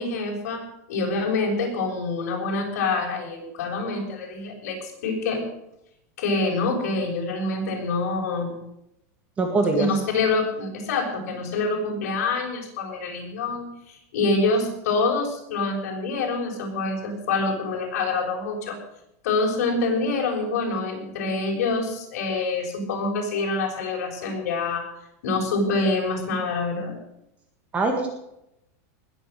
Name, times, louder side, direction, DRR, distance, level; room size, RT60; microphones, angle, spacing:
voice 1, 0.0-5.5 6.2-8.6 9.7-18.8 19.2-24.8 25.2-27.0, left 3 dB, 65° left, 0 dB, 6.7 m, -26 dB
voice 2, 9.4-9.9 27.7-28.1, right 3 dB, 15° right, 3 dB, 1.9 m, -22 dB
20.0 x 8.5 x 6.8 m, 0.82 s
supercardioid pair, 170°, 9 cm